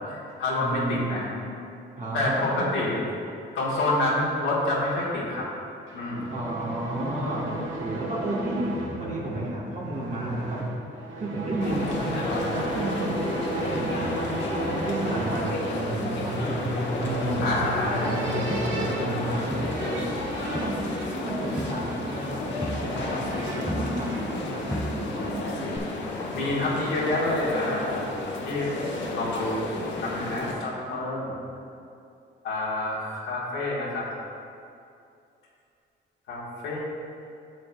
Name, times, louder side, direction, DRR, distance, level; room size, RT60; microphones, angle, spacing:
voice 1, 0.1-1.2 2.1-3.0 3.5-5.5 5.9-6.3 17.4-18.0 26.3-28.0 28.4-28.7 29.1-29.6 30.0-31.3 32.4-34.0 36.3-36.8, left 2 dB, 90° left, -7 dB, 1.4 m, -27 dB
voice 2, 0.6-1.3 2.0-3.0 6.3-10.7 11.2-16.7 17.0-20.2 20.5-20.8 21.1-25.8, right 1 dB, 40° right, -5 dB, 1.2 m, -32 dB
sound 1, 5.9-24.9, right 2 dB, 75° right, 1.1 m, -34 dB
sound 2, 11.6-30.5, left 2 dB, 65° left, 1.0 m, -32 dB
Crowd, 17.4-19.2 19.5-24.4 24.7-25.4 25.8-25.9, equal, ahead, 0.3 m, -37 dB
9.3 x 6.5 x 2.3 m, 2.6 s
cardioid pair, 90°, 20 cm